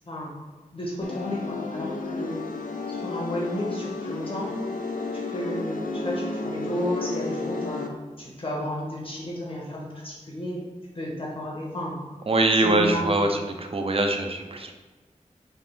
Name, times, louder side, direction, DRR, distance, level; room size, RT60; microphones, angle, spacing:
voice 1, 0.7-2.4 2.9-4.6 5.3-10.7 10.9-12.0 12.6-13.3, equal, 40° left, -3 dB, 1.1 m, -32 dB
sound 1, 1.0-7.9, left 3 dB, 85° left, 0.4 m, -32 dB
voice 2, 12.3-14.7, right 2 dB, 45° right, 4 dB, 0.5 m, -23 dB
3.5 x 2.5 x 4.2 m, 1.3 s
wide cardioid pair, 75°, 14 cm